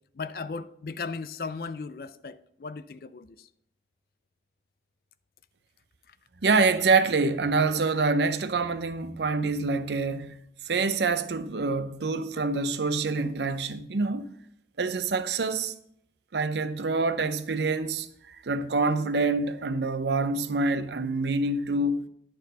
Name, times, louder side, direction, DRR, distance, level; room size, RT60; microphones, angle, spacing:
voice 1, 0.1-3.5, left 4 dB, 55° left, 0.4 m, -37 dB
voice 2, 6.4-14.3 14.8-15.7 16.3-22.0, right 3 dB, 75° right, 0.6 m, -26 dB
11.0 x 4.4 x 5.3 m
head